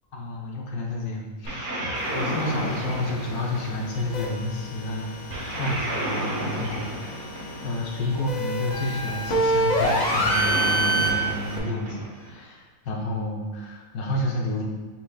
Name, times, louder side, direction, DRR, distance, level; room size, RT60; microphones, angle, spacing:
voice 1, 0.1-1.8 2.1-7.3 7.6-14.6, left 2 dB, 85° left, -2 dB, 1.3 m, -30 dB
sound 1, 1.4-4.1 5.3-7.9 9.8-12.4, right 1 dB, 55° right, 1.2 m, -31 dB
sound 2, 1.9-11.6, right 1 dB, 65° left, 0.4 m, -28 dB
5.7 x 3.2 x 2.3 m, 1.4 s
omnidirectional pair, 1.5 m